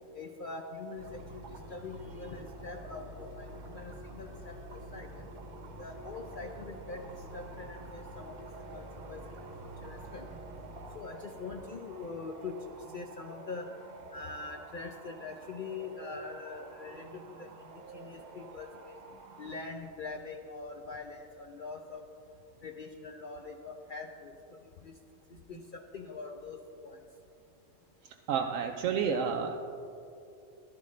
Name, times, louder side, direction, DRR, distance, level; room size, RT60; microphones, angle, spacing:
voice 1, 0.1-5.3 5.8-8.4 8.7-9.2 9.6-10.3 10.9-13.7 14.1-18.9 19.4-22.0 22.6-24.3 24.8-25.0 25.5-27.0, left 4 dB, 50° left, 3 dB, 0.7 m, -43 dB
sound 1, 1.0-11.0, right 1 dB, 65° right, 1.4 m, -47 dB
sound 2, 3.8-19.6, right 4 dB, 45° right, 0.6 m, -52 dB
voice 2, 28.0-29.6, right 6 dB, 80° right, 3 dB, 0.9 m, -31 dB
14.5 x 12.0 x 3.2 m, 2.7 s
omnidirectional pair, 1.3 m